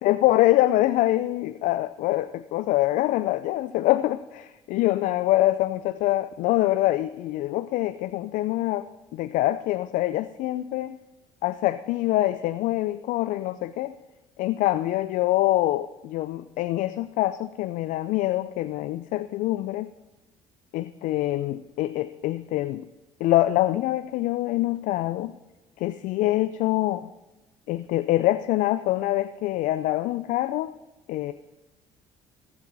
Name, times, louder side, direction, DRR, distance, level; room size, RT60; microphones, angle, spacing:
voice 1, 0.0-11.0 11.4-13.9 14.4-19.9 20.7-22.9 23.2-25.3 25.8-27.1 27.7-30.7 31.1-31.3, left 16 dB, 65° left, 12 dB, 0.5 m, -25 dB
15.5 x 11.5 x 4.1 m, 1.1 s
hypercardioid pair, 65°, 14 cm